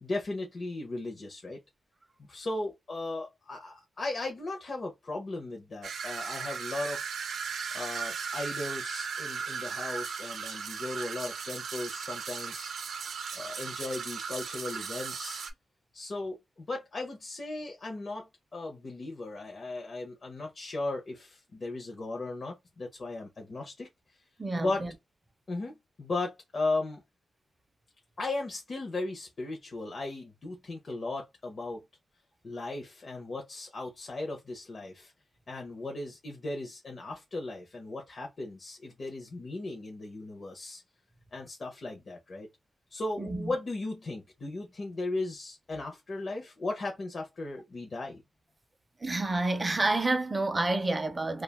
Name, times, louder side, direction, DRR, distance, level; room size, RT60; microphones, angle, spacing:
voice 1, 0.0-1.6 2.2-7.2 7.7-12.7 13.4-15.4 15.9-24.2 24.6-24.9 25.5-27.0 28.2-31.8 32.4-35.1 35.5-40.8 41.3-42.5 42.9-48.2, left 2 dB, 40° left, 0.6 m, -37 dB
sound 1, 5.8-15.5, right 6 dB, 80° right, 0.5 m, -37 dB
voice 2, 24.4-24.9 43.2-43.5 49.0-51.4, right 2 dB, 20° right, 0.5 m, -29 dB
3.2 x 2.2 x 2.2 m
wide cardioid pair, 135°, 0 cm